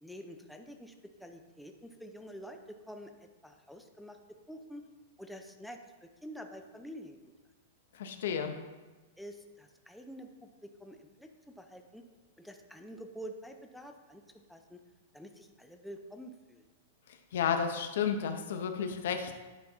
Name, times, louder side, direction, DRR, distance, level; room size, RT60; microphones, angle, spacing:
voice 1, 0.0-0.9 1.2-3.1 3.4-4.2 4.5-4.9 5.2-7.2 9.2-12.0 12.4-14.2 14.5-14.8 15.1-16.7, equal, ahead, 4 dB, 0.5 m, -47 dB
voice 2, 7.9-8.6 17.3-19.3, left 7 dB, 65° left, 6 dB, 0.8 m, -32 dB
10.5 x 5.6 x 3.5 m, 1.2 s
supercardioid pair, 170°, 0 cm